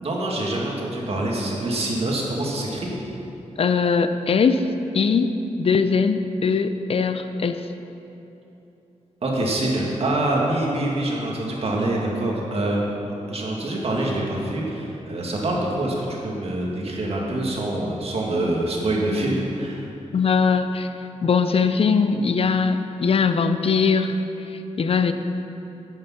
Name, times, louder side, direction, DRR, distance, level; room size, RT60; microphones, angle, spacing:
voice 1, 0.0-2.9 9.2-13.0 13.3-19.8, right 1 dB, 55° right, -2 dB, 2.0 m, -25 dB
voice 2, 3.6-4.7 4.9-7.6 20.1-20.9 21.2-24.2 24.5-25.1, left 5 dB, 50° left, 9 dB, 0.5 m, -21 dB
9.7 x 8.7 x 5.8 m, 3.0 s
wide cardioid pair, 140°, 13 cm